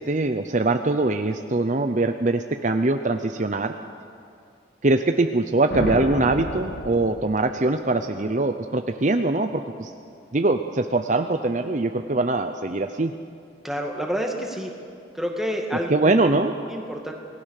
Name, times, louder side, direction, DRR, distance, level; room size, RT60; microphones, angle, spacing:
voice 1, 0.0-3.7 4.8-9.9 10.3-13.1 15.9-16.5, right 2 dB, 40° right, 7 dB, 0.7 m, -22 dB
sound 1, 5.7-7.8, left 1 dB, 75° left, 1.8 m, -31 dB
voice 2, 13.6-14.7 15.1-17.1, equal, ahead, 1 dB, 2.2 m, -29 dB
27.5 x 19.5 x 6.6 m, 2.4 s
head